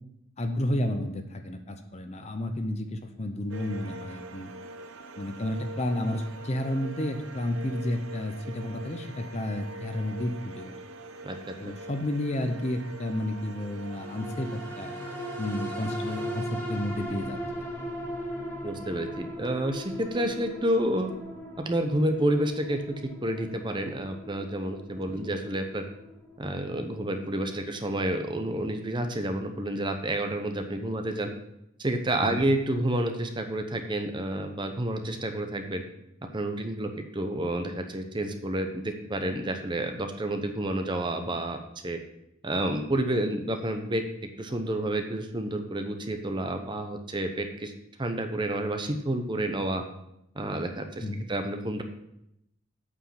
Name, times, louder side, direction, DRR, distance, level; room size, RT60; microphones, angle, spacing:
voice 1, 0.4-4.5 5.2-10.8 11.6-14.9 15.4-17.9 25.1-25.3 32.2-32.4 51.0-51.3, left 1 dB, 35° left, 7 dB, 0.7 m, -31 dB
sound 1, 3.5-16.4, right 1 dB, 70° right, 0.8 m, -43 dB
sound 2, 13.9-28.6 29.0-29.1, equal, 10° left, 1.5 m, -39 dB
voice 2, 18.6-21.1 21.6-22.8 23.2-25.8 26.4-31.3 31.8-35.8 36.3-42.0 42.4-44.0 44.4-47.7 48.0-49.8 50.3-51.8, right 1 dB, 25° right, 5 dB, 0.8 m, -29 dB
8.5 x 5.1 x 5.8 m, 0.81 s
head